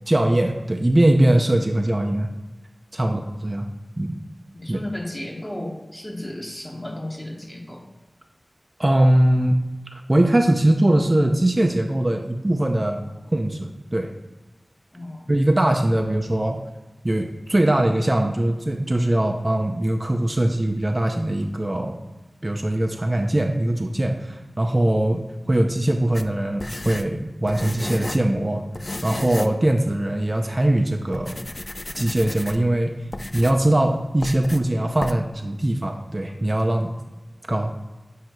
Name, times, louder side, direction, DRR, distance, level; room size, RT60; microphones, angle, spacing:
voice 1, 0.1-2.3 2.9-3.7 4.0-4.2 4.7-4.8 8.8-9.6 10.1-13.0 13.3-14.1 15.3-16.6 17.0-22.0 22.4-28.7 29.0-31.4 31.9-32.9 33.3-36.9 37.5-37.7, right 1 dB, 30° right, 3 dB, 0.4 m, -21 dB
voice 2, 4.5-7.8 12.7-13.3 14.9-15.3, left 1 dB, 20° left, 0 dB, 1.1 m, -35 dB
sound 1, 26.1-28.3 28.7-29.6 29.9-30.0 30.7-30.8 31.1-32.7 33.1-33.7 34.2-34.6 35.0-35.1, left 1 dB, 40° left, 0.3 m, -33 dB
7.8 x 2.8 x 4.4 m, 1.1 s
wide cardioid pair, 70°, 0 cm